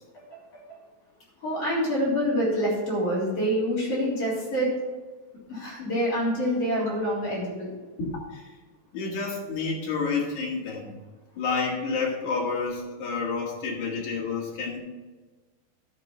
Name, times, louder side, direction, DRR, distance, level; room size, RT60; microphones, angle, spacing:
voice 1, 1.4-4.7 5.5-7.7 8.0-8.1, equal, 50° left, -7 dB, 4.5 m, -26 dB
voice 2, 8.9-10.9 11.4-14.8, left 4 dB, 65° left, -2 dB, 3.3 m, -29 dB
11.0 x 5.8 x 5.6 m, 1.3 s
omnidirectional pair, 3.6 m